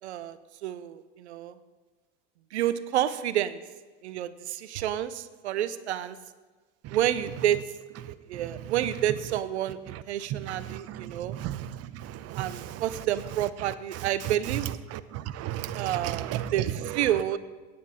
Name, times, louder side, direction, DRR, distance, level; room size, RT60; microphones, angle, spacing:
voice 1, 0.0-1.5 2.5-3.6 4.0-6.2 6.9-7.6 8.3-11.4 12.4-14.7 15.7-17.4, right 11 dB, 80° right, 15 dB, 0.8 m, -29 dB
voice 2, 10.3-11.0 11.3-11.7 12.3-12.7 14.9-16.5, right 12 dB, 45° right, 13 dB, 0.8 m, -34 dB
16.5 x 9.6 x 4.2 m, 1.3 s
hypercardioid pair, 80°, 33 cm